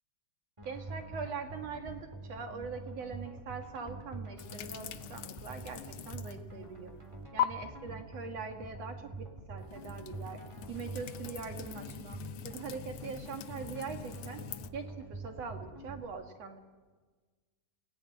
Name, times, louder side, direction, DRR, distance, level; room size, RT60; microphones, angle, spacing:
sound 1, 0.6-16.0, right 2 dB, 10° right, 2.2 m, -46 dB
voice 1, 0.6-6.9 7.3-10.4 10.7-14.4 14.7-16.6, right 5 dB, 55° right, 5 dB, 2.5 m, -42 dB
sound 2, 4.4-6.5 6.8-7.4 9.6-14.7, left 11 dB, 85° left, 1.3 m, -41 dB
28.0 x 18.5 x 9.6 m, 1.4 s
omnidirectional pair, 3.9 m